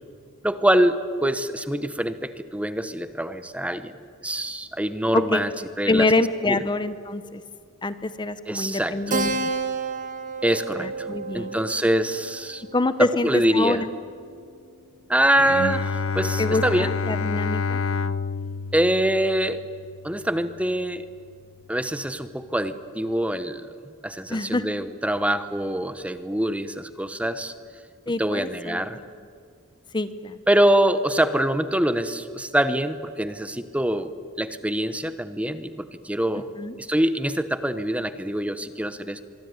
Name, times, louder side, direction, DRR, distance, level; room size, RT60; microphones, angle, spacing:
voice 1, 0.4-3.9 4.2-5.5 5.8-6.1 6.5-6.6 8.5-8.9 10.4-11.1 11.3-12.6 13.0-13.8 15.1-17.0 18.7-19.6 20.0-21.0 21.7-23.7 24.0-27.5 28.2-29.0 30.5-34.1 34.4-36.5 36.8-39.2, right 1 dB, 5° right, 12 dB, 0.9 m, -24 dB
voice 2, 5.8-7.4 7.8-9.3 10.8-11.6 12.7-13.9 16.4-17.8 24.3-24.6 28.1-29.0 29.9-30.4 36.5-36.7, left 2 dB, 20° left, 12 dB, 0.9 m, -25 dB
Keyboard (musical), 9.1-14.1, right 3 dB, 40° right, 2.1 m, -31 dB
Bowed string instrument, 15.3-20.6, left 4 dB, 75° left, 0.8 m, -29 dB
24.0 x 24.0 x 9.5 m, 2.2 s
head